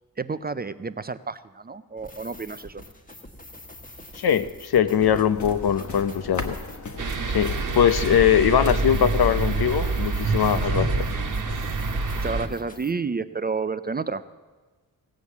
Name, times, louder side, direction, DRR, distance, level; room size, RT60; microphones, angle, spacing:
voice 1, 0.2-2.8 12.1-14.2, right 4 dB, 25° right, 12 dB, 0.4 m, -30 dB
sound 1, 2.0-12.9, left 1 dB, 20° left, 1.3 m, -43 dB
voice 2, 4.1-6.6 7.3-11.0, left 9 dB, 80° left, 12 dB, 0.7 m, -21 dB
sound 2, 5.0-10.0, left 3 dB, 50° left, 1.4 m, -37 dB
sound 3, 7.0-12.5, right 3 dB, 55° right, 1.2 m, -26 dB
17.0 x 8.3 x 7.1 m, 1.3 s
wide cardioid pair, 140°, 37 cm